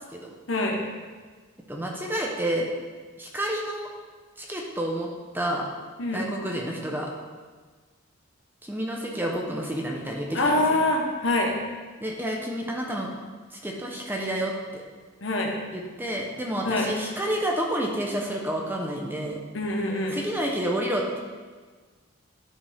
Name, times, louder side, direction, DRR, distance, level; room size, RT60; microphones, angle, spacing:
voice 1, 0.5-0.8 6.0-6.2 10.3-11.6 15.2-15.5 16.6-16.9 19.5-20.2, left 2 dB, 70° left, 0 dB, 1.2 m, -24 dB
voice 2, 1.7-2.7 3.2-3.9 4.4-5.1 5.3-5.7 6.1-7.1 8.6-10.4 12.0-13.1 13.5-14.8 15.7-19.4 20.1-21.2, right 1 dB, 10° right, -1 dB, 0.8 m, -29 dB
11.5 x 5.1 x 3.5 m, 1.4 s
head